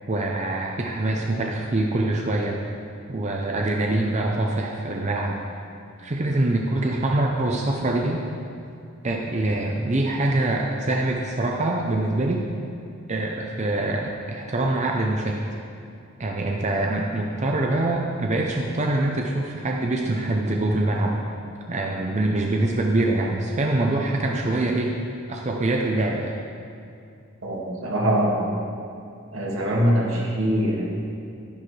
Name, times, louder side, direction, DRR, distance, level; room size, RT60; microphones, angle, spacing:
voice 1, 0.1-2.6 3.1-5.4 6.0-8.2 9.0-12.5 13.1-15.4 16.2-21.2 21.7-25.0 25.3-26.4, right 2 dB, 35° right, 0 dB, 0.6 m, -24 dB
voice 2, 27.4-28.5 29.3-30.9, equal, 80° right, -4 dB, 2.1 m, -23 dB
11.0 x 10.0 x 3.3 m, 2.4 s
head